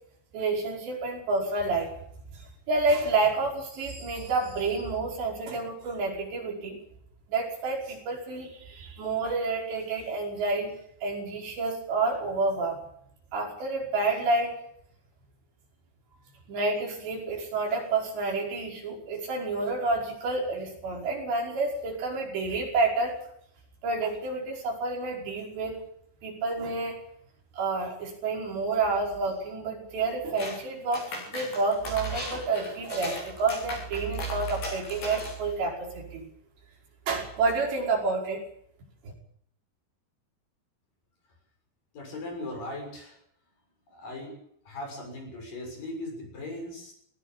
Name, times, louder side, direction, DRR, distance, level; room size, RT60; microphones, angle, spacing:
voice 1, 0.3-1.9 2.3-6.8 7.3-10.7 11.0-12.8 13.3-14.6 16.5-23.2 23.8-25.8 26.2-27.0 27.5-36.2 37.1-38.4 39.0-39.1, right 3 dB, 70° right, -1 dB, 7.5 m, -29 dB
sound 1, 30.4-30.6 30.9-35.5, left 2 dB, 65° left, 9.2 m, -37 dB
voice 2, 41.9-43.2 43.9-44.4 44.6-46.9, left 1 dB, 50° left, 3 dB, 8.4 m, -38 dB
20.0 x 16.5 x 8.8 m, 0.71 s
omnidirectional pair, 5.2 m